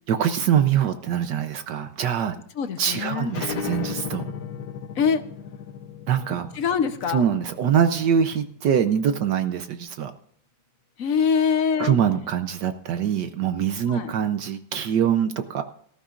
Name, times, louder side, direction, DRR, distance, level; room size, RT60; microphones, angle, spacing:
voice 1, 0.1-2.4 2.8-4.3 6.1-6.5 7.1-10.1 11.8-15.6, right 8 dB, 70° right, 9 dB, 1.3 m, -23 dB
voice 2, 2.5-3.4 4.9-5.2 6.5-7.2 11.0-12.0 13.9-14.1, left 6 dB, 55° left, 10 dB, 1.1 m, -24 dB
sound 1, 3.3-8.6, left 6 dB, 90° left, 1.9 m, -35 dB
18.5 x 14.0 x 2.5 m, 0.64 s
omnidirectional pair, 2.0 m